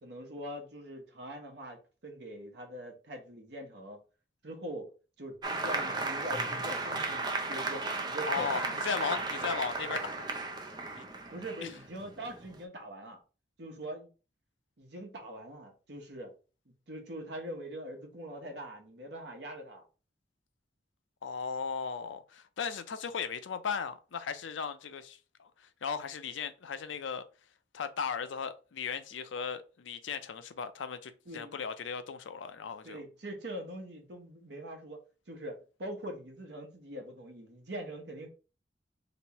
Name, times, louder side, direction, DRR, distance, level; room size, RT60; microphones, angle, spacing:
voice 1, 0.0-4.0 4.4-4.9 5.2-8.8 9.1-9.2 11.3-13.2 13.6-14.1 14.8-16.3 16.9-19.8 31.3-31.6 32.8-35.0 35.3-38.3, right 1 dB, 65° right, 1.0 m, -43 dB
Applause, 5.4-12.6, right 3 dB, 25° right, 0.4 m, -35 dB
voice 2, 8.3-10.3 10.9-11.1 11.6-11.7 21.2-27.2 27.7-33.0, left 6 dB, 90° left, 0.5 m, -37 dB
3.4 x 3.0 x 2.9 m
head